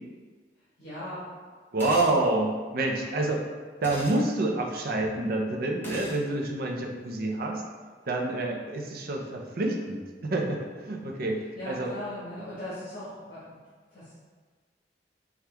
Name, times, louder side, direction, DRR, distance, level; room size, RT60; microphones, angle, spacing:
voice 1, 0.6-1.3 11.6-13.6 13.9-14.2, left 1 dB, 55° left, -10 dB, 1.3 m, -39 dB
voice 2, 1.7-3.5 3.8-7.6 8.1-11.9, right 2 dB, 55° right, 1 dB, 0.6 m, -28 dB
sound 1, 1.8-2.2 3.8-4.2 5.8-6.2, left 1 dB, 15° left, 0.7 m, -39 dB
5.8 x 2.4 x 3.3 m, 1.5 s
head